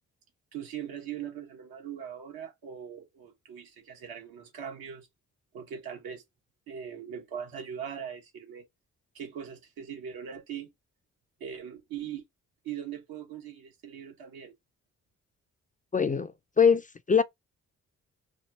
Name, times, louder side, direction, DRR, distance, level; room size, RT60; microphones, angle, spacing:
voice 1, 0.5-5.1 5.5-6.2 6.7-8.7 9.1-10.7 11.4-12.2 12.6-14.5, right 8 dB, 75° right, 1.2 m, -40 dB
voice 2, 15.9-17.2, left 6 dB, 25° left, 0.4 m, -23 dB
3.3 x 2.4 x 2.7 m
hypercardioid pair, 40°, 36 cm